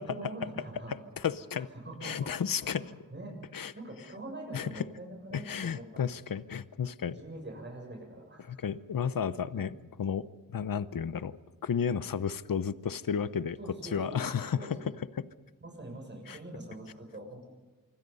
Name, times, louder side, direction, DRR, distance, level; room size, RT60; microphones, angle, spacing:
voice 1, 0.0-1.0 1.7-2.3 2.6-3.4 3.7-6.3 7.1-8.6 13.6-14.9 15.6-17.5, right 1 dB, 35° right, 1 dB, 7.1 m, -44 dB
voice 2, 0.9-1.7 2.0-3.0 3.5-3.7 4.5-4.9 5.3-7.2 8.5-10.3 10.5-13.6 13.8-14.8 15.2-15.3 16.3-16.4, left 7 dB, 75° left, 14 dB, 0.9 m, -33 dB
26.0 x 24.5 x 5.6 m, 1.2 s
wide cardioid pair, 115°, 34 cm